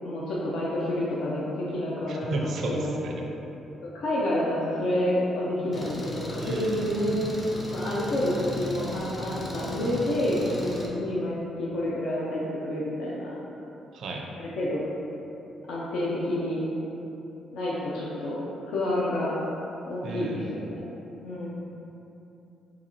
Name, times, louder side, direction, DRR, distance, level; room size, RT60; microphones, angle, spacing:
voice 1, 0.0-2.9 3.9-7.3 7.7-13.3 14.4-14.8 15.7-16.6 17.5-18.4 18.7-19.3 19.8-20.8 21.2-21.5, left 1 dB, 80° left, -7 dB, 0.5 m, -29 dB
voice 2, 2.1-3.2 6.4-7.3 13.9-14.3 20.0-20.6, right 2 dB, 65° right, 0 dB, 0.4 m, -34 dB
Engine, 5.7-10.9, equal, 25° left, 0.5 m, -37 dB
3.8 x 2.4 x 2.9 m, 3.0 s
cardioid pair, 90°, 0 cm